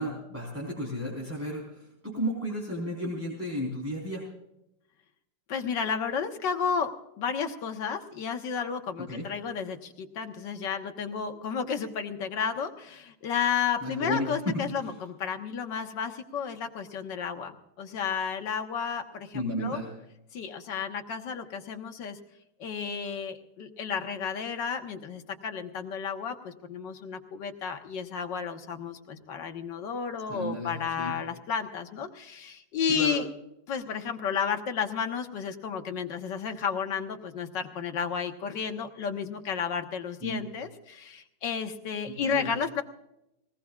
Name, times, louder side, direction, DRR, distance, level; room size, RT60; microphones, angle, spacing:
voice 1, 0.0-4.2 9.1-9.3 13.8-14.9 19.3-19.9 30.3-31.1 32.9-33.2 40.2-40.4 42.2-42.5, equal, 5° right, -4 dB, 4.2 m, -33 dB
voice 2, 5.5-6.9 7.2-19.8 20.3-22.2 22.6-33.3 33.7-42.8, left 6 dB, 65° left, 5 dB, 1.8 m, -32 dB
20.0 x 19.5 x 2.4 m, 0.85 s
omnidirectional pair, 2.1 m